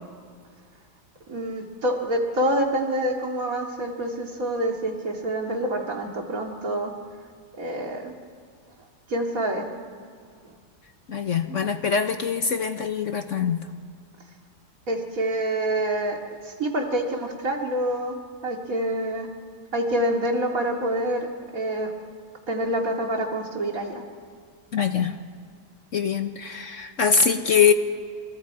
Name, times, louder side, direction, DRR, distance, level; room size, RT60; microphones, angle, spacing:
voice 1, 1.3-6.9 7.6-8.1 9.1-9.7 10.4-10.5 14.9-16.2 16.4-18.2 18.4-19.3 19.7-21.9 22.5-24.0, right 1 dB, 55° right, 1 dB, 2.7 m, -27 dB
voice 2, 11.1-13.7 24.7-25.2 25.9-27.7, left 6 dB, 55° left, 8 dB, 1.2 m, -23 dB
30.0 x 28.5 x 4.8 m, 2.1 s
omnidirectional pair, 1.8 m